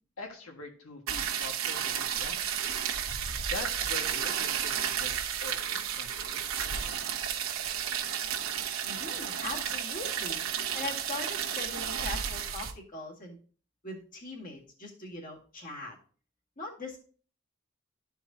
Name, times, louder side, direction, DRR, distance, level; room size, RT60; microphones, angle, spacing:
voice 1, 0.2-2.6 3.5-7.0, left 3 dB, 85° left, 2 dB, 1.7 m, -44 dB
sound 1, 1.1-12.7, right 8 dB, 80° right, 1.1 m, -32 dB
voice 2, 8.8-10.5 10.7-13.4 13.8-16.0 16.6-17.0, left 2 dB, 40° left, -1 dB, 1.9 m, -41 dB
13.0 x 4.6 x 2.7 m, 0.42 s
head